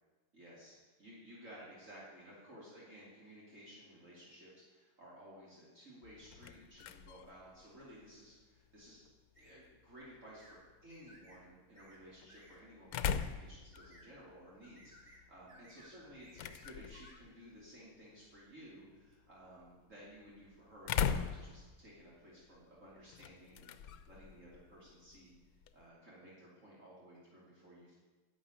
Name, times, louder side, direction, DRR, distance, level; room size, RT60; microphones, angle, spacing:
voice 1, 0.3-9.0 9.3-25.3 25.7-27.9, equal, 50° right, -6 dB, 3.1 m, -56 dB
sound 1, 6.0-25.9, left 7 dB, 75° left, 1.1 m, -44 dB
sound 2, 9.4-9.6 10.4-10.6 10.9-11.4 11.8-12.0 12.3-12.6 12.9-13.3 13.7-14.1 14.6-15.2 15.5-15.9 16.2-17.2, right 1 dB, 25° right, 2.5 m, -61 dB
11.5 x 8.3 x 8.7 m, 1.3 s
omnidirectional pair, 1.7 m